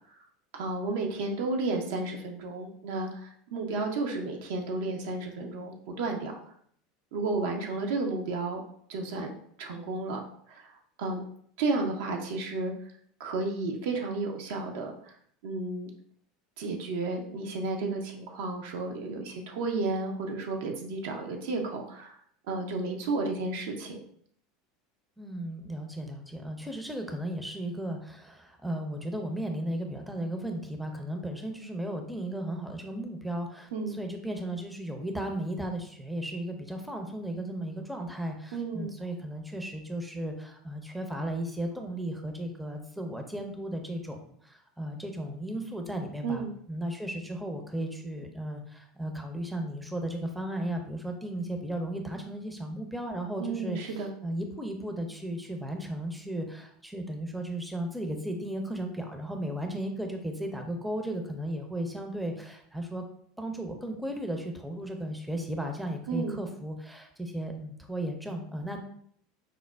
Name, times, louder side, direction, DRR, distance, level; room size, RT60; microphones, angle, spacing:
voice 1, 0.5-6.4 7.1-8.6 8.9-9.3 9.6-10.2 10.5-11.2 11.6-12.7 13.2-15.1 15.4-15.9 16.6-22.2 22.5-24.0 33.7-33.9 38.5-38.9 46.2-46.5 53.4-54.1 66.1-66.4, right 3 dB, 65° right, 2 dB, 0.5 m, -32 dB
voice 2, 25.2-63.0 63.4-68.8, right 1 dB, 5° right, 3 dB, 0.5 m, -35 dB
4.9 x 2.0 x 2.2 m, 0.63 s
figure-of-eight pair, 75°, 0 cm